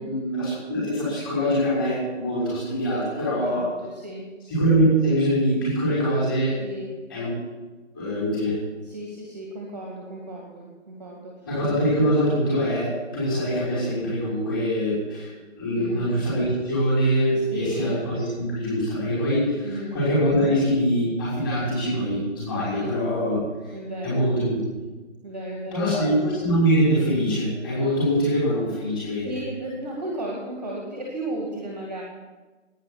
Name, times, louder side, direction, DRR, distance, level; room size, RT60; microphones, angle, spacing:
voice 1, 0.0-3.7 4.5-6.6 7.1-7.3 7.9-8.5 11.4-15.3 15.5-23.4 24.0-24.6 25.7-29.3, equal, 15° left, -9 dB, 6.1 m, -23 dB
voice 2, 3.3-4.3 6.6-7.0 8.8-11.4 15.8-16.1 17.5-17.9 19.6-20.0 22.7-23.0 23.7-24.3 25.2-25.9 29.2-32.0, right 1 dB, 10° right, -2 dB, 1.4 m, -34 dB
11.5 x 9.3 x 8.4 m, 1.3 s
figure-of-eight pair, 165°, 38 cm